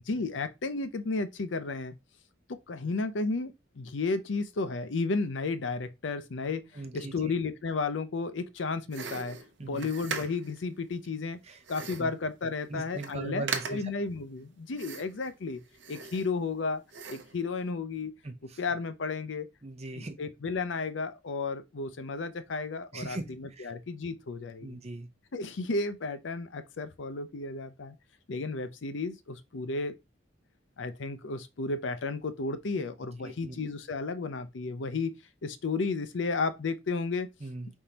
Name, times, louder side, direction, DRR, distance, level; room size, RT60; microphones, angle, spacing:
voice 1, 0.1-1.9 2.5-6.6 6.9-9.4 9.6-11.4 11.7-15.6 15.9-16.8 17.1-18.1 18.6-19.5 20.0-24.8 25.3-28.0 28.3-29.9 30.8-35.1 35.4-37.3, left 3 dB, 75° left, 0.6 m, -33 dB
voice 2, 6.7-7.3 9.6-9.9 11.4-11.6 12.0-12.1 12.7-13.9 18.2-18.6 19.6-20.2 22.9-23.7 24.6-25.1 33.2-33.6 37.4-37.7, right 2 dB, 35° right, 0.8 m, -39 dB
sound 1, 8.9-10.6 11.6-12.2 12.6-12.7 12.9-13.2 13.5-14.0 14.8-15.3 15.7-16.6 16.9-17.4, right 6 dB, 65° right, 0.7 m, -39 dB
5.0 x 3.6 x 2.8 m
head